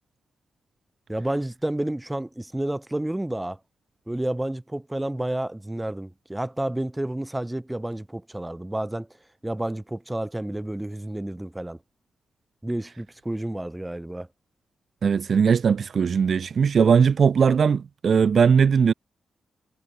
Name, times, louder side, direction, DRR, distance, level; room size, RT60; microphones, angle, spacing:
voice 1, 1.1-3.6 4.1-9.1 9.4-11.8 12.6-14.3, right 1 dB, 10° right, 1.6 m, -30 dB
voice 2, 15.0-18.9, right 6 dB, 50° right, 0.5 m, -19 dB
wide cardioid pair, 125°, 0 cm